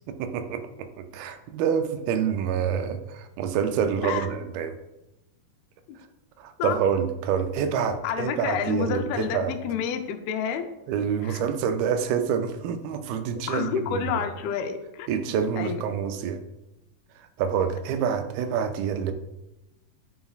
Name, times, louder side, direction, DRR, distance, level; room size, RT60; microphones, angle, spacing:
voice 1, 0.1-4.8 6.4-9.5 10.9-14.2 15.1-16.4 17.2-19.1, right 7 dB, 85° right, 8 dB, 2.5 m, -27 dB
voice 2, 8.0-10.6 11.2-11.4 13.5-15.1 15.6-15.8, left 7 dB, 85° left, 6 dB, 2.6 m, -29 dB
9.3 x 6.9 x 2.4 m, 0.94 s
omnidirectional pair, 4.2 m